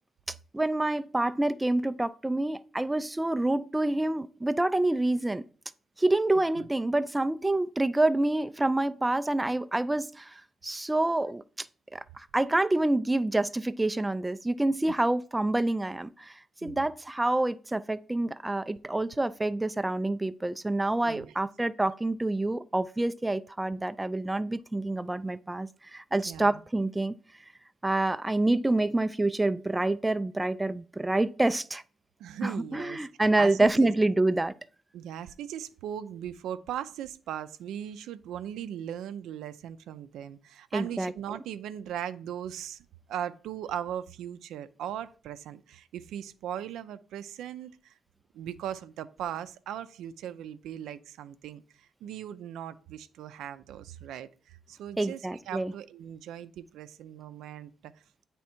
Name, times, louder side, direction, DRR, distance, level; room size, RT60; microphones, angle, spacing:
voice 1, 0.5-5.4 6.0-11.7 11.9-27.1 27.8-31.8 32.4-34.5 40.7-41.1 55.0-55.7, right 2 dB, 10° right, 0.3 m, -27 dB
voice 2, 26.3-26.6 32.2-33.1 33.4-33.9 34.9-48.0 48.3-57.9, right 10 dB, 85° right, 0.4 m, -39 dB
8.5 x 3.5 x 4.3 m
cardioid pair, 90°, 0 cm